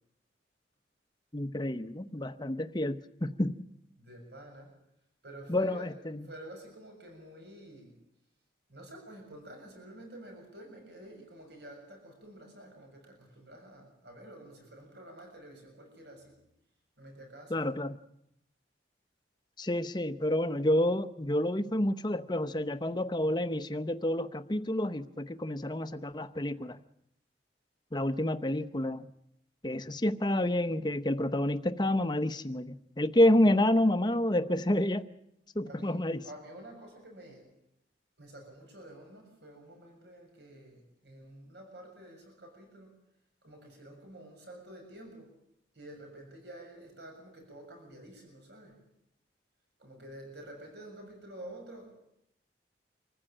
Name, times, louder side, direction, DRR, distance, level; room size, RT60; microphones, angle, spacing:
voice 1, 1.3-3.6 5.5-6.3 17.5-18.0 19.6-26.8 27.9-29.1 29.6-35.1 35.5-36.2, left 1 dB, 25° left, 10 dB, 0.9 m, -29 dB
voice 2, 4.0-4.8 5.2-5.9 6.2-8.0 8.7-16.4 17.0-17.8 35.6-37.5 38.2-43.0 43.4-45.4 45.7-48.8 49.8-51.9, right 1 dB, 65° right, 3 dB, 6.8 m, -49 dB
25.5 x 15.0 x 8.9 m, 0.77 s
head